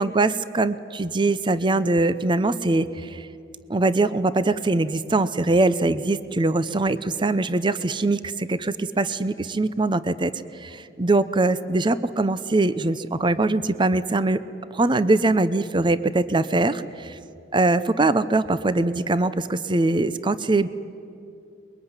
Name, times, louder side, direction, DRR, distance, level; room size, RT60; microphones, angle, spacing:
voice 1, 0.0-3.3 3.7-10.3 10.6-14.4 14.7-17.2 17.5-20.7, right 2 dB, 25° right, 14 dB, 0.7 m, -22 dB
24.0 x 22.0 x 9.7 m, 2.6 s
head